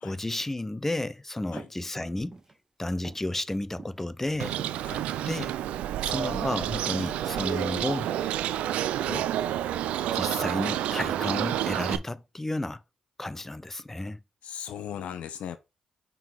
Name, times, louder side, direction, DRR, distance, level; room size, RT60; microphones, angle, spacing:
voice 1, 0.0-2.4 2.8-4.6 5.3-5.5 6.0-8.1 9.0-9.3 10.1-12.8 13.2-14.2, left 1 dB, 15° left, 0.6 m, -32 dB
sound 1, 1.5-1.8 2.2-2.6 3.0-3.3 3.8-4.1 4.5-5.5 6.1-6.3 6.6-7.1 7.7-7.9 8.5-8.8, right 3 dB, 30° right, 1.2 m, -46 dB
Bird, 4.4-12.0, right 12 dB, 85° right, 0.4 m, -29 dB
voice 2, 14.4-15.6, left 9 dB, 80° left, 0.7 m, -38 dB
5.6 x 3.7 x 4.7 m
cardioid pair, 65°, 2 cm